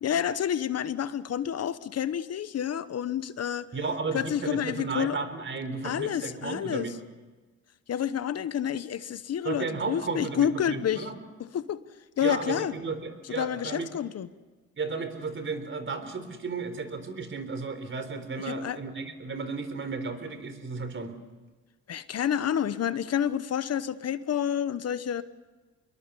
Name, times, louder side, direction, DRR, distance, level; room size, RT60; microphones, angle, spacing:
voice 1, 0.0-3.7 4.1-5.2 5.8-6.9 7.9-11.1 11.4-11.8 12.2-12.7 13.4-14.3 18.5-18.8 21.9-25.2, left 9 dB, 55° left, 14 dB, 1.1 m, -29 dB
voice 2, 3.7-6.9 9.4-11.2 12.2-13.9 14.8-21.1, right 4 dB, 40° right, 9 dB, 3.9 m, -34 dB
26.0 x 22.0 x 7.0 m, 1.3 s
cardioid pair, 90°, 30 cm